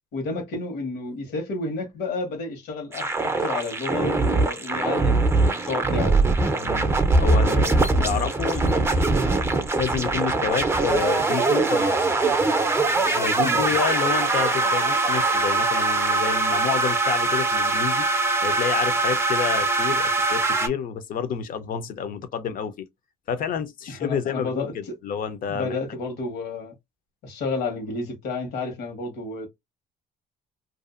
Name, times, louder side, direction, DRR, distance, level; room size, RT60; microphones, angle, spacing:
voice 1, 0.1-6.2 7.9-8.3 13.4-13.7 23.9-25.0 25.5-26.7 27.2-29.5, left 3 dB, 80° left, 1.3 m, -31 dB
sound 1, 2.9-20.7, right 3 dB, 15° right, 0.6 m, -22 dB
voice 2, 6.6-6.9 7.2-9.1 9.8-12.1 13.1-18.1 18.4-22.9 23.3-25.8, left 7 dB, 55° left, 0.6 m, -29 dB
2.6 x 2.4 x 2.4 m
cardioid pair, 110°, 17 cm